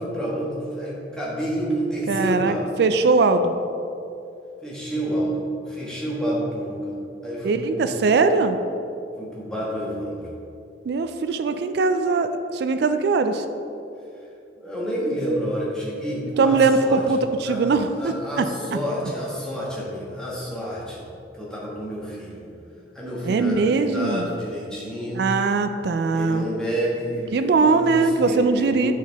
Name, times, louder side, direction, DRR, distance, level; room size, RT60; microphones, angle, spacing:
voice 1, 0.0-2.6 4.6-7.0 7.2-8.0 9.2-10.3 14.6-17.0 17.4-17.6 18.0-21.1 21.3-22.5 22.9-25.2 26.1-28.9, equal, 5° left, -6 dB, 1.3 m, -29 dB
voice 2, 2.1-3.5 7.4-8.6 10.9-13.4 16.4-18.5 23.2-24.3 25.2-26.5 27.3-28.9, right 4 dB, 65° right, 9 dB, 0.3 m, -21 dB
7.8 x 4.5 x 3.5 m, 2.7 s
head